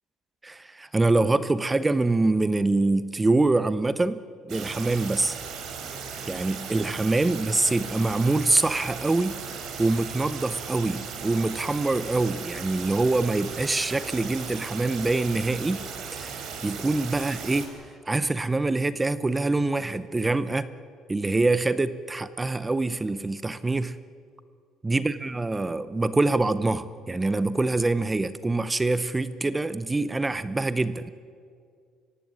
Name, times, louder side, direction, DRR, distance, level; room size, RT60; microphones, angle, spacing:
voice 1, 0.4-5.4 6.3-9.4 9.8-17.8 18.1-20.7 21.1-24.0 24.8-31.1, right 2 dB, 15° right, 15 dB, 0.7 m, -25 dB
sound 1, 4.5-17.7, right 6 dB, 65° right, 3.9 m, -37 dB
25.0 x 15.5 x 9.8 m, 2.2 s
cardioid pair, 130°, 0 cm